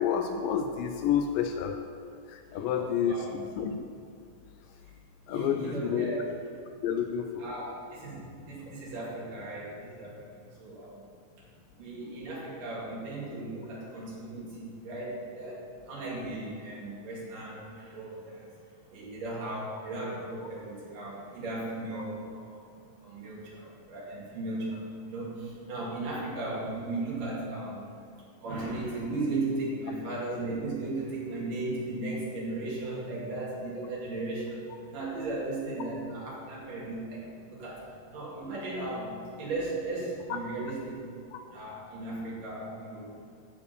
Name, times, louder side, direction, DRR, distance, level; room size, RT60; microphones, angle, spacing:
voice 1, 0.0-1.8 2.3-3.3 3.6-3.8 5.3-6.1 6.8-7.4 41.3-41.4, left 8 dB, 80° left, 6 dB, 2.2 m, -29 dB
voice 2, 2.6-3.4 5.3-6.3 7.4-11.0 11.8-18.5 18.9-22.6 23.0-27.9 28.4-41.0 41.5-43.1, right 2 dB, 70° right, -6 dB, 4.0 m, -36 dB
14.0 x 5.0 x 6.7 m, 2.3 s
omnidirectional pair, 4.0 m